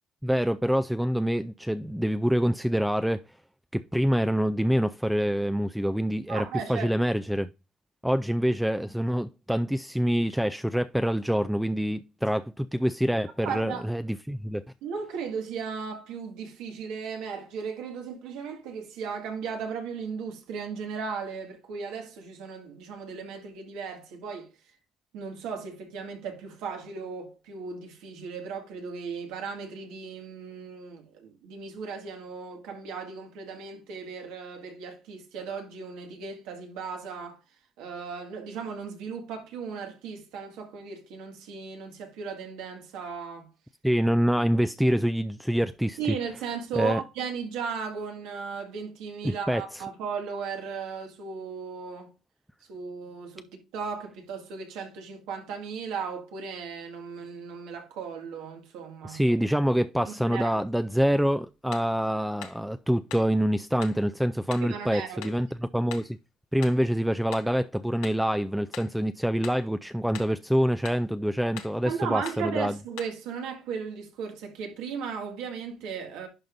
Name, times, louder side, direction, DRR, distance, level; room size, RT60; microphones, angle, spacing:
voice 1, 0.2-3.2 3.7-7.5 8.0-14.6 43.8-46.2 46.7-47.0 49.2-49.8 59.0-66.2 66.5-72.8, equal, ahead, 0.3 m, -26 dB
voice 2, 6.3-6.9 13.4-13.9 14.8-24.5 25.1-37.4 37.8-43.5 46.0-52.1 52.7-53.5 53.7-59.2 60.1-60.5 64.6-65.3 71.8-76.3, right 6 dB, 85° right, 1.9 m, -36 dB
sound 1, 61.7-62.0 62.4-62.6 63.1-63.4 63.8-64.0 64.5-64.7 65.2-65.4 65.9-66.2 66.6-66.9 67.3-67.6 68.0-68.3 68.7-69.0 69.4-69.7 70.1-70.4 70.9-71.1 71.6-71.8 72.3-72.5 73.0-73.2, left 10 dB, 90° left, 1.0 m, -43 dB
11.0 x 5.2 x 2.6 m
cardioid pair, 95°, 0 cm